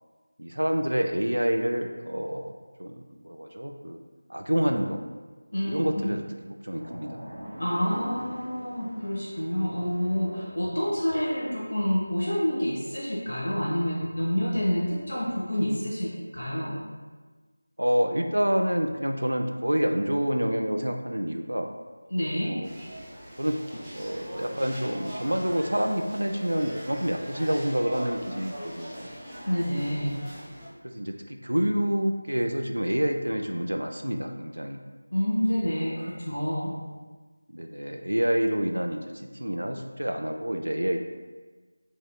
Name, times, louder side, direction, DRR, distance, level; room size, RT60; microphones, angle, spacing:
voice 1, 0.4-2.5 2.8-4.0 4.3-5.0 5.7-6.2 6.6-7.2 17.8-21.7 22.5-22.7 23.4-29.1 30.8-34.8 35.8-36.0 37.5-41.0, equal, 80° right, 4 dB, 0.3 m, -28 dB
sound 1, 6.7-11.1 13.3-13.6, equal, 55° right, 0.9 m, -43 dB
voice 2, 7.6-16.8 22.1-22.6 29.5-30.2 35.1-36.7, equal, 65° left, -5 dB, 0.7 m, -28 dB
sound 2, 22.6-30.7, equal, 5° right, 0.5 m, -41 dB
3.6 x 3.4 x 2.2 m, 1.3 s
figure-of-eight pair, 170°, 0 cm